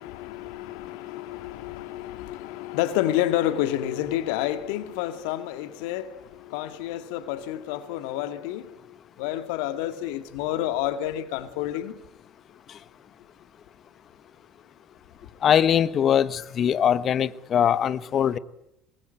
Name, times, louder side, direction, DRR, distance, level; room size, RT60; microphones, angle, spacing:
voice 1, 0.0-12.0, left 13 dB, 75° left, 2.0 m, -29 dB
voice 2, 15.4-18.4, left 9 dB, 50° left, 1.1 m, -22 dB
26.5 x 21.0 x 9.1 m
hypercardioid pair, 65°, 0 cm